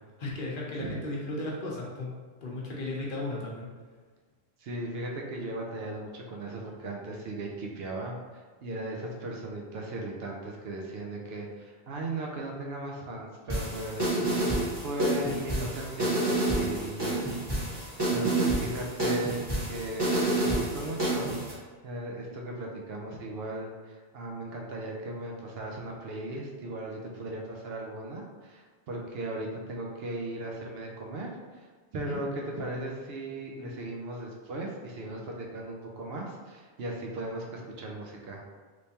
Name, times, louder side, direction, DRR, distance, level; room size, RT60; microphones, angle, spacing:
voice 1, 0.2-2.1 2.4-3.7 32.0-32.2, left 2 dB, 55° left, -4 dB, 0.9 m, -35 dB
voice 2, 4.6-8.2 8.6-14.2 14.8-17.4 18.1-21.4 21.8-32.3 32.6-38.4, right 1 dB, 70° right, 0 dB, 0.8 m, -37 dB
sound 1, 13.5-21.5, right 2 dB, 25° right, 1.2 m, -29 dB
3.3 x 3.1 x 2.7 m, 1.4 s
omnidirectional pair, 1.1 m